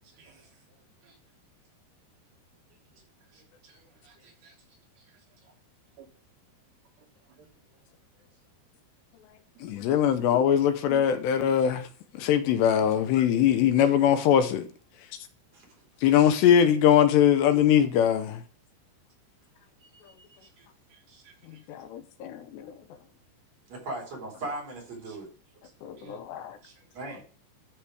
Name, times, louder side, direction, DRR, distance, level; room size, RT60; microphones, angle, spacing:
voice 1, 0.2-0.5 1.0-1.2 3.3-4.6 5.0-5.5 6.0-6.1 7.3-7.5 9.5-9.7 20.4-21.6 25.1-25.2 26.0-26.2 26.6-26.7, right 6 dB, 65° right, 2.9 m, -59 dB
voice 2, 9.6-11.9 12.2-14.7 16.0-18.4 21.7-22.7 25.8-26.6, left 9 dB, 85° left, 2.9 m, -22 dB
voice 3, 23.7-25.3 25.6-25.7 25.9-26.2 26.9-27.2, right 2 dB, 40° right, 4.9 m, -38 dB
13.5 x 5.1 x 4.9 m
omnidirectional pair, 5.0 m